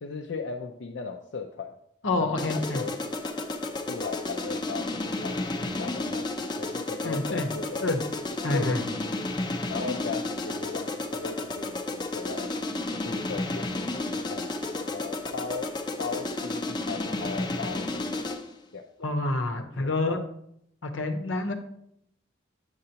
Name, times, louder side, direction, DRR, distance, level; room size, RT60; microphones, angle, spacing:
voice 1, 0.0-1.7 2.2-2.9 3.9-4.9 5.2-8.0 8.5-8.8 9.7-12.6 13.0-15.7 16.0-18.4 18.7-18.8 19.5-19.9, left 4 dB, 70° left, 2 dB, 0.5 m, -37 dB
voice 2, 2.0-2.8 7.0-7.5 7.8-8.0 8.4-8.8 19.0-20.2 20.8-21.5, left 2 dB, 90° left, 7 dB, 0.9 m, -27 dB
sound 1, 2.4-18.6, left 2 dB, 25° left, 0.6 m, -32 dB
8.3 x 6.6 x 2.9 m, 0.73 s
head